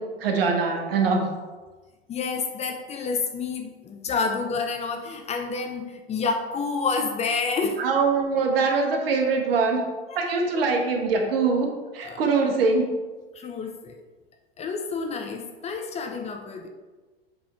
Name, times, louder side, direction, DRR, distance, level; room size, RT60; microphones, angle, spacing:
voice 1, 0.2-1.3 7.8-9.8 10.1-12.9, right 4 dB, 65° right, 2 dB, 1.3 m, -23 dB
voice 2, 2.1-7.8 10.1-10.2 10.6-10.7 12.0-12.2 13.3-14.0 14.6-16.7, left 4 dB, 20° left, 4 dB, 0.6 m, -29 dB
7.3 x 4.4 x 3.5 m, 1.3 s
hypercardioid pair, 100°, 31 cm